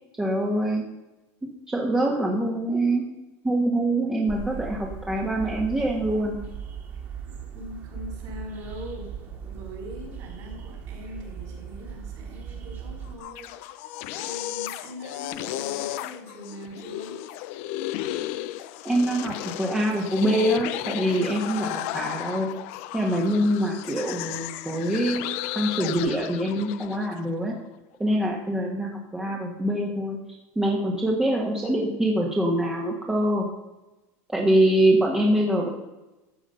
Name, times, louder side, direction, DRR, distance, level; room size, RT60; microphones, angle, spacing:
voice 1, 0.2-0.8 1.7-3.1 3.4-6.3 18.8-22.5 22.9-25.2 25.5-27.5 28.0-30.2 30.5-33.5 34.3-35.7, right 1 dB, 5° right, -1 dB, 1.6 m, -24 dB
sound 1, 4.3-13.2, right 7 dB, 30° right, 2.9 m, -38 dB
voice 2, 7.5-9.1 9.4-17.2, left 1 dB, 45° right, 1 dB, 5.5 m, -41 dB
sound 2, 13.1-27.2, left 14 dB, 65° left, 0.8 m, -34 dB
13.0 x 8.2 x 5.7 m, 1.0 s
supercardioid pair, 155°, 8 cm